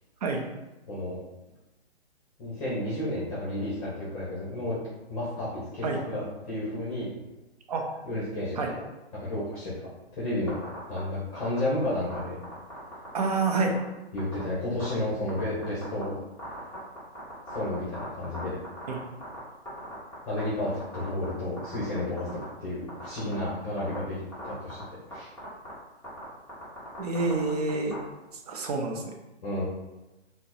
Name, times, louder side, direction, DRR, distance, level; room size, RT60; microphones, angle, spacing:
voice 1, 0.9-1.2 2.4-4.8 5.1-7.1 8.0-8.6 9.2-9.9 10.1-10.6 10.9-12.4 14.1-16.1 17.5-18.6 20.2-22.3 22.6-24.2 24.4-24.8 25.1-25.3 29.4-29.6, left 1 dB, 35° left, -8 dB, 1.1 m, -31 dB
sound 1, 10.5-11.0 11.4-11.6 12.1-13.3 13.6-13.8 14.2-14.4 14.8-14.9 15.3-16.0 16.4-19.4 19.6-20.4 20.7-21.3 21.6-22.4 22.9-23.5 23.8-24.0 24.3-24.8 25.1-25.2 25.4-25.7 26.0-26.2 26.5-28.0, equal, 5° left, 1.0 m, -40 dB
voice 2, 13.1-13.8 18.9-19.0 27.0-28.0 28.5-29.0, right 3 dB, 35° right, 1 dB, 0.5 m, -27 dB
4.1 x 2.2 x 2.7 m, 1.0 s
figure-of-eight pair, 135°, 33 cm